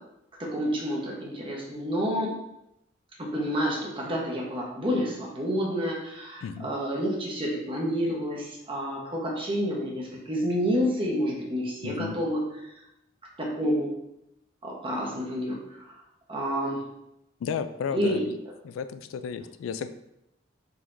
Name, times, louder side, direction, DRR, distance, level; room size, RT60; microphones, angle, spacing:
voice 1, 0.4-2.3 3.2-12.4 13.4-14.0 14.6-15.9 16.3-16.9 17.9-18.2, equal, 25° right, -3 dB, 1.0 m, -29 dB
voice 2, 11.8-12.2 17.4-18.4 18.6-20.0, left 6 dB, 90° left, 12 dB, 0.3 m, -33 dB
4.4 x 4.0 x 2.6 m, 0.85 s
head